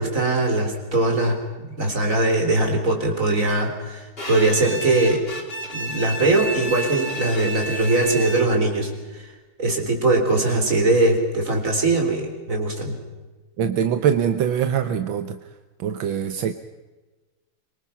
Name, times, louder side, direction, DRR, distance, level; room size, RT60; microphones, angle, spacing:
voice 1, 0.0-5.2 5.7-9.3 9.6-13.0, right 2 dB, 40° right, 3 dB, 4.3 m, -21 dB
Bowed string instrument, 4.2-8.8, right 1 dB, 30° left, 2.9 m, -31 dB
voice 2, 13.6-15.4 15.8-16.5, right 8 dB, 80° right, 9 dB, 1.7 m, -23 dB
24.5 x 24.0 x 5.8 m, 1.2 s
omnidirectional pair, 2.1 m